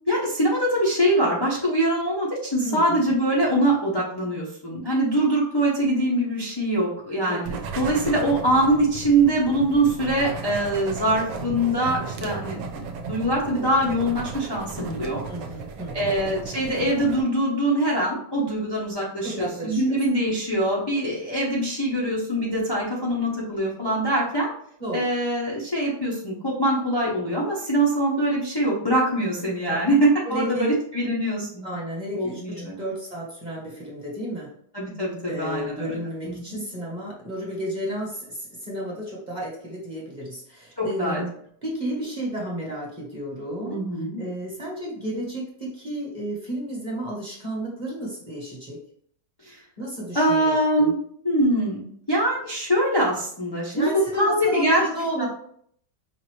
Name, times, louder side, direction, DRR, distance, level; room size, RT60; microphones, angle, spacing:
voice 1, 0.1-15.2 15.9-24.5 24.9-31.6 32.1-32.8 34.7-35.9 36.2-36.6 40.8-41.2 43.7-44.2 49.4-49.6 50.1-50.9 51.2-54.8 55.2-55.3, right 1 dB, 25° left, -6 dB, 0.6 m, -23 dB
voice 2, 2.6-3.0 7.3-7.5 15.3-16.1 19.2-20.0 24.8-25.1 29.7-29.8 30.2-30.8 31.6-34.5 35.3-41.3 41.6-43.8 44.2-48.8 49.8-50.9 53.7-55.2, right 1 dB, 30° right, -4 dB, 1.1 m, -32 dB
sound 1, 7.4-17.2, right 4 dB, 80° right, 1.3 m, -35 dB
5.5 x 2.6 x 3.1 m, 0.63 s
omnidirectional pair, 1.9 m